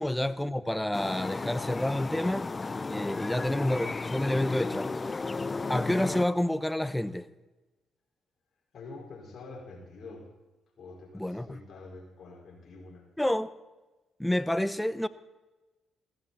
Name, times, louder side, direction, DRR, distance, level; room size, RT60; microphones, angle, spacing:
voice 1, 0.0-2.5 2.9-4.9 5.7-7.3 11.1-11.6 13.2-13.5 14.2-15.1, left 1 dB, 5° left, 0.8 m, -29 dB
sound 1, 0.9-6.3, left 3 dB, 30° left, 0.4 m, -34 dB
voice 2, 8.7-10.3 10.8-13.0, left 3 dB, 55° left, 5.1 m, -46 dB
15.5 x 14.5 x 4.3 m
supercardioid pair, 55°, 0 cm